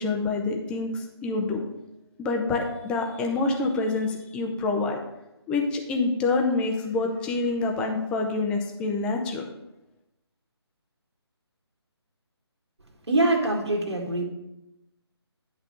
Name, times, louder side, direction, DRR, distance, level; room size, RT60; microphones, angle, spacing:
voice 1, 0.0-1.6 2.2-5.0 5.5-9.4, left 3 dB, 5° left, 2 dB, 0.6 m, -27 dB
voice 2, 13.1-14.2, right 2 dB, 75° right, 0 dB, 1.9 m, -24 dB
10.5 x 3.6 x 6.6 m, 0.92 s
figure-of-eight pair, 150°, 14 cm